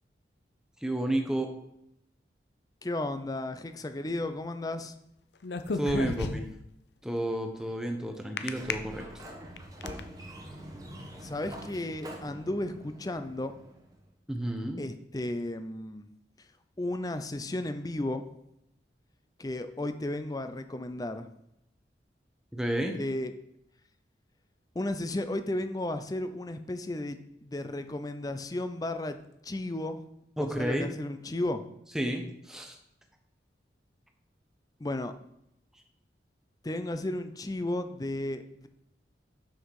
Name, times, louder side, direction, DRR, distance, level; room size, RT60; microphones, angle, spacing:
voice 1, 0.8-1.5 5.7-6.5 7.0-9.0 14.3-14.8 22.5-23.0 30.4-30.9 31.9-32.8, right 1 dB, 5° right, 3 dB, 1.0 m, -31 dB
voice 2, 2.8-4.9 11.2-13.5 14.8-16.1 16.8-18.2 19.4-21.3 23.0-23.3 24.7-29.2 29.4-30.0 30.4-31.6 34.8-35.1 36.6-38.7, left 1 dB, 20° left, 9 dB, 0.5 m, -34 dB
sound 1, 5.4-6.7 8.4-8.7 9.3-10.0, left 4 dB, 75° left, 0.6 m, -32 dB
Sliding door, 8.3-14.0, equal, 20° right, 1.3 m, -45 dB
7.3 x 6.4 x 4.8 m, 0.80 s
head